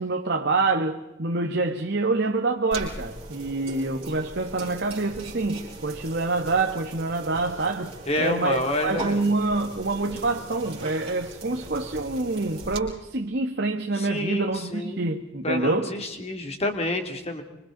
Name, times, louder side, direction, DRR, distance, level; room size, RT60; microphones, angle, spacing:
voice 1, 0.0-15.9, right 3 dB, 60° right, 1.4 m, -26 dB
sound 1, 2.7-12.8, right 2 dB, 30° right, 5.1 m, -39 dB
voice 2, 8.1-9.1 13.9-15.0 15.4-17.4, left 1 dB, 35° left, 2.8 m, -28 dB
26.0 x 25.5 x 4.0 m
head